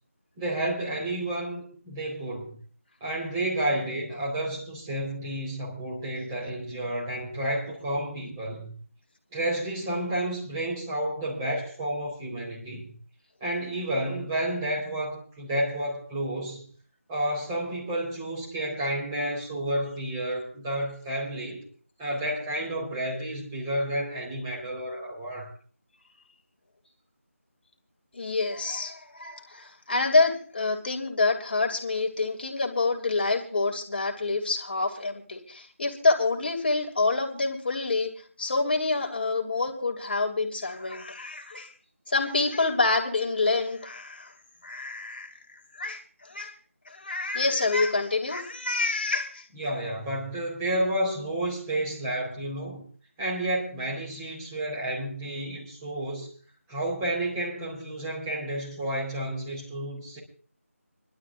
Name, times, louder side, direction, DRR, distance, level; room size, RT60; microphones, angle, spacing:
voice 1, 0.4-2.5 3.0-8.7 9.3-12.9 13.4-16.6 17.1-21.6 22.0-25.5 49.6-52.8 53.2-56.3 56.7-60.2, right 1 dB, 15° right, -4 dB, 4.2 m, -31 dB
voice 2, 28.1-38.1 38.4-41.7 42.1-44.3 44.6-45.3 45.7-46.5 46.8-49.5, left 3 dB, 40° left, 2 dB, 2.6 m, -27 dB
26.5 x 12.0 x 2.5 m, 0.42 s
figure-of-eight pair, 165°, 8 cm